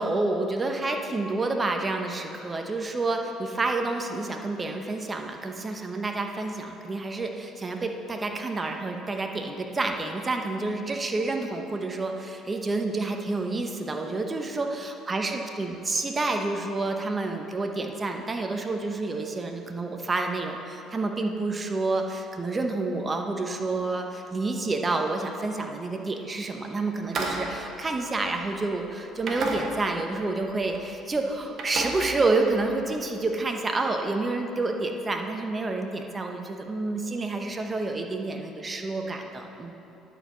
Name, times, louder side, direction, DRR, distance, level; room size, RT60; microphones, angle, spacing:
voice 1, 0.0-39.7, right 3 dB, 25° right, 4 dB, 0.8 m, -29 dB
sound 1, 27.0-28.7 29.2-30.1 30.4-30.8 31.1-32.7, right 2 dB, 55° right, 1.3 m, -34 dB
11.0 x 4.4 x 6.1 m, 2.9 s
supercardioid pair, 80°, 0 cm